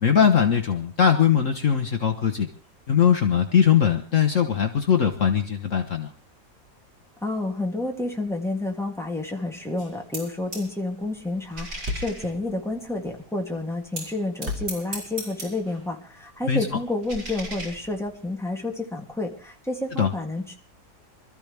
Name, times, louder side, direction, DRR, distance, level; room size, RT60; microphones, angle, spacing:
voice 1, 0.0-2.5 2.9-6.1 16.5-16.7 20.0-20.1, left 8 dB, 55° left, 5 dB, 1.4 m, -20 dB
voice 2, 7.2-20.6, left 2 dB, ahead, 0 dB, 2.6 m, -30 dB
sound 1, 9.8-10.7 11.0-13.2 14.0-15.8 16.1-18.3, right 1 dB, 70° right, 6.2 m, -39 dB
Thump thud, 10.4-10.6 10.9-11.0 11.2-11.3 11.5-11.6 11.8-15.8, left 2 dB, 45° right, 2.6 m, -35 dB
26.0 x 13.5 x 3.4 m, 0.38 s
omnidirectional pair, 1.7 m